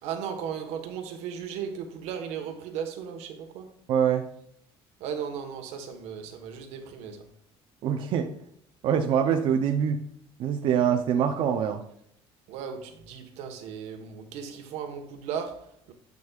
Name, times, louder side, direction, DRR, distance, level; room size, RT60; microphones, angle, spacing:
voice 1, 0.0-3.7 5.0-7.3 12.5-15.9, right 7 dB, 85° right, 1.4 m, -36 dB
voice 2, 3.9-4.2 7.8-8.3 8.8-10.0 10.4-11.8, right 8 dB, 55° right, 0.6 m, -24 dB
9.4 x 5.3 x 2.4 m
cardioid pair, 165°, 11 cm